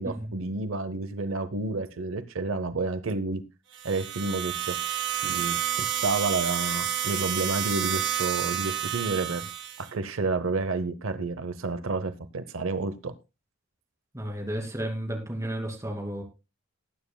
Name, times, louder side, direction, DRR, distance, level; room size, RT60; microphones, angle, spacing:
voice 1, 0.0-3.4 3.8-4.8 5.1-9.5 9.8-13.1, right 3 dB, 80° right, 12 dB, 0.8 m, -30 dB
sound 1, 3.7-9.9, right 10 dB, 60° right, 1.9 m, -30 dB
voice 2, 14.1-16.2, right 1 dB, 15° right, 2 dB, 2.6 m, -32 dB
19.5 x 9.1 x 2.2 m, 0.26 s
head